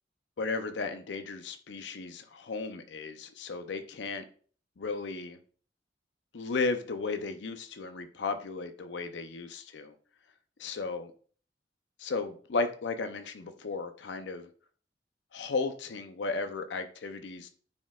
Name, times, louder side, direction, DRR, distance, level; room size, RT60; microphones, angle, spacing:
voice 1, 0.4-4.2 4.8-5.4 6.3-9.9 10.6-11.1 12.0-14.5 15.3-17.5, left 4 dB, 80° left, 8 dB, 0.6 m, -35 dB
9.5 x 4.3 x 2.3 m, 0.43 s
head